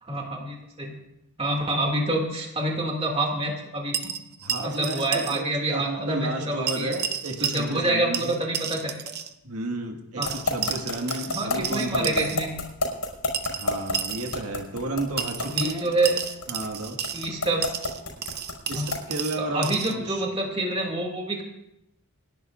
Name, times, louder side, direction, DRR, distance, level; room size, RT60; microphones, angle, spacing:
voice 1, 0.0-0.9 1.4-4.0 4.6-6.9 7.4-9.0 10.2-10.4 11.3-12.5 15.4-16.2 17.1-17.7 18.7-18.9 19.4-21.4, right 2 dB, 25° right, 0 dB, 2.4 m, -27 dB
sound 1, 3.9-5.4 5.7-5.8 6.7-7.9 8.1-9.3 10.2-12.4 13.3-14.4 15.2-17.3 17.6-20.0, right 8 dB, 45° right, 0.8 m, -32 dB
voice 2, 4.4-8.4 9.4-12.4 13.6-16.0 16.5-17.0 18.7-20.2, right 1 dB, 90° right, 2 dB, 1.8 m, -32 dB
sound 2, 10.2-19.1, left 2 dB, 90° left, 5.2 m, -28 dB
28.5 x 11.0 x 2.5 m, 0.87 s
head